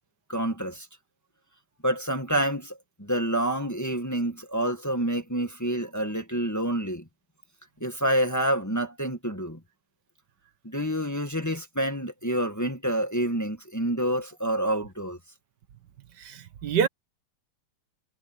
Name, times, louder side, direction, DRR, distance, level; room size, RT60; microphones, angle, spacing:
voice 1, 0.3-0.9 1.8-7.0 7.8-9.6 10.6-15.2, right 1 dB, 10° left, 1.7 m, -28 dB
voice 2, 16.2-16.9, right 7 dB, 70° right, 1.8 m, -26 dB
omnidirectional pair, 1.9 m